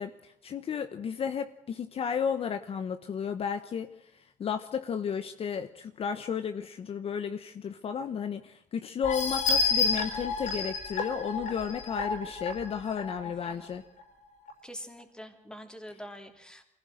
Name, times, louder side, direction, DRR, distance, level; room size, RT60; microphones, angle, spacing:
voice 1, 0.0-3.9 4.4-13.8, left 7 dB, 45° left, 1.1 m, -33 dB
sound 1, 9.0-13.5 14.0-14.1 14.5-14.6, left 4 dB, 70° left, 6.2 m, -30 dB
voice 2, 13.2-13.6 14.6-16.6, equal, 5° left, 3.2 m, -45 dB
24.5 x 16.5 x 7.7 m
cardioid pair, 130°, 13 cm